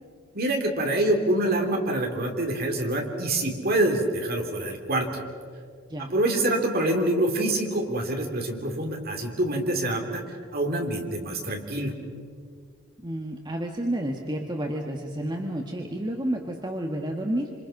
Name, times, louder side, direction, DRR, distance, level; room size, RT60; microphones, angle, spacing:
voice 1, 0.3-5.1 6.0-10.2 10.5-11.9, right 1 dB, 45° right, 2 dB, 3.4 m, -26 dB
voice 2, 13.0-17.5, right 1 dB, 20° right, 1 dB, 1.4 m, -30 dB
27.0 x 27.0 x 5.9 m, 2.1 s
head